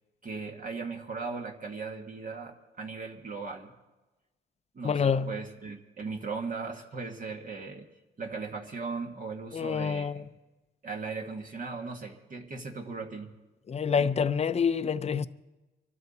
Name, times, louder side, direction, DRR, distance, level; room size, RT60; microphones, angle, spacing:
voice 1, 0.2-3.7 4.7-7.9 8.2-10.3 10.8-13.3, right 4 dB, 45° right, 1.6 m, -38 dB
voice 2, 4.8-5.3 9.5-10.2 13.7-15.3, left 6 dB, 35° left, 0.6 m, -27 dB
24.5 x 12.5 x 4.2 m
cardioid pair, 90°, 20 cm